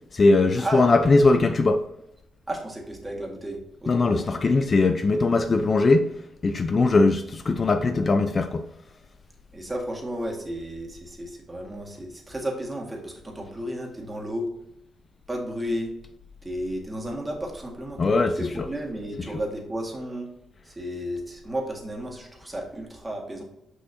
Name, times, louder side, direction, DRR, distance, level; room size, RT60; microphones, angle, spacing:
voice 1, 0.1-1.8 3.9-6.1 6.4-8.7 18.0-18.7, left 3 dB, 40° left, 0.5 m, -20 dB
voice 2, 2.5-4.3 9.5-14.5 15.3-15.9 16.4-20.3 20.7-23.4, equal, 15° right, 1.9 m, -33 dB
6.3 x 5.6 x 2.8 m
cardioid pair, 70°, 0 cm